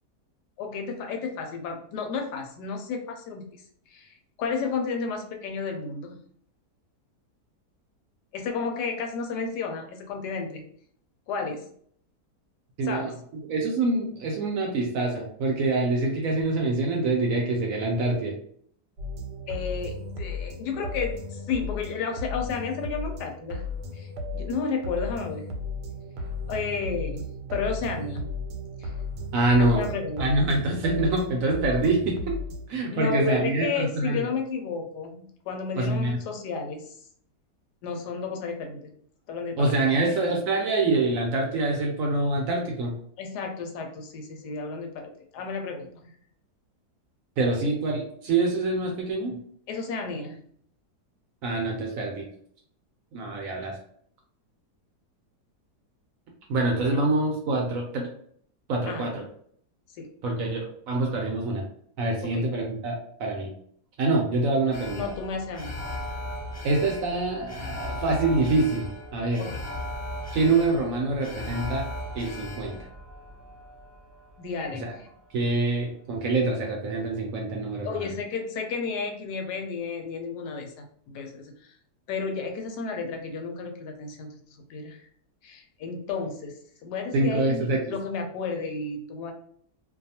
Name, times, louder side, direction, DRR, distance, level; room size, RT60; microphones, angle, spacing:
voice 1, 0.6-3.6 3.9-6.2 8.3-10.6 11.3-11.7 12.8-13.1 19.5-23.6 23.9-25.4 26.5-28.3 28.8-28.9 29.7-30.3 32.9-37.0 37.8-38.9 39.3-39.7 40.0-40.3 43.2-46.1 49.7-50.4 56.9-57.0 58.9-59.1 60.0-60.1 62.3-62.5 64.9-65.7 69.4-69.6 74.4-74.9 77.8-81.7 82.1-85.0 85.4-89.3, left 5 dB, 80° left, 3 dB, 1.1 m, -32 dB
voice 2, 12.8-13.1 13.5-18.3 29.3-29.8 30.2-32.3 32.7-34.3 35.8-36.2 39.6-42.9 47.4-49.4 51.4-52.2 53.1-53.7 56.5-58.1 58.7-59.2 60.2-61.6 62.0-63.5 64.0-65.0 66.6-69.4 70.3-71.9 72.1-72.8 74.8-74.9 75.3-78.2 87.1-87.8, right 2 dB, 70° right, 0 dB, 0.8 m, -25 dB
sound 1, 19.0-32.7, left 3 dB, 85° right, 1.2 m, -35 dB
Alarm, 64.7-75.0 75.3-75.4, left 1 dB, 40° left, 0.7 m, -37 dB
2.6 x 2.3 x 2.7 m, 0.63 s
omnidirectional pair, 1.8 m